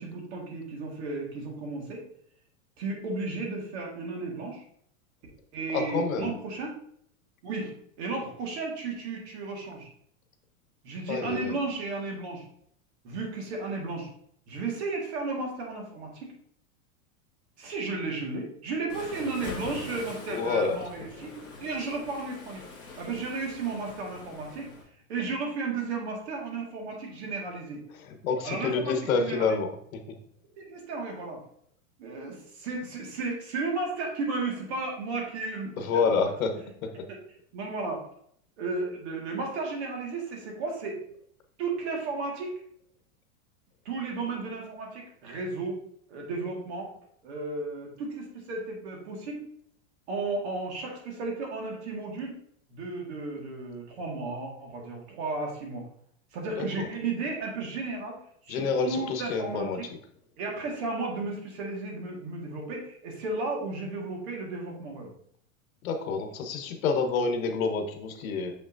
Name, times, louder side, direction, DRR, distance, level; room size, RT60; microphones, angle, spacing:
voice 1, 0.0-2.0 2.8-4.6 5.5-6.7 7.4-7.7 8.0-9.9 10.8-12.5 13.0-14.1 14.5-16.3 17.6-22.6 23.0-24.7 25.1-27.8 28.4-29.6 30.6-31.4 32.0-36.2 37.1-37.2 37.5-38.0 38.6-41.0 41.6-42.6 43.9-45.7 46.1-46.9 47.2-49.4 50.1-52.4 52.7-55.8 56.3-58.2 58.5-59.9 60.4-65.1, right 3 dB, 50° right, 0 dB, 1.9 m, -34 dB
voice 2, 5.7-6.3 11.1-11.6 20.3-20.8 28.0-29.7 35.8-36.6 36.8-36.9 56.6-56.9 58.5-59.8 65.8-68.5, left 4 dB, 75° left, 5 dB, 1.2 m, -28 dB
Waves surf, 18.9-24.8, left 3 dB, 10° left, 1.4 m, -43 dB
6.6 x 5.8 x 2.7 m, 0.66 s
supercardioid pair, 180°, 41 cm